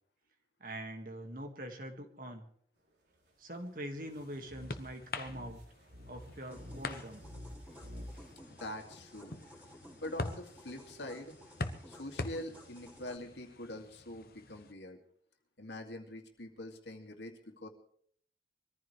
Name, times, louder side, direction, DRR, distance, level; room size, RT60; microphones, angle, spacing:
voice 1, 0.6-2.5 3.4-5.6 6.1-7.2, right 1 dB, 50° right, 4 dB, 2.1 m, -44 dB
sound 1, 3.6-14.7, left 2 dB, 55° left, 1.0 m, -45 dB
sound 2, 4.4-8.3, left 1 dB, 80° right, 3.4 m, -49 dB
sound 3, 6.5-13.2, equal, 10° right, 3.7 m, -55 dB
voice 2, 8.5-9.3 10.0-11.4 11.9-15.0 15.6-17.7, left 1 dB, 85° left, 3 dB, 2.5 m, -44 dB
23.5 x 14.5 x 3.4 m, 0.63 s
head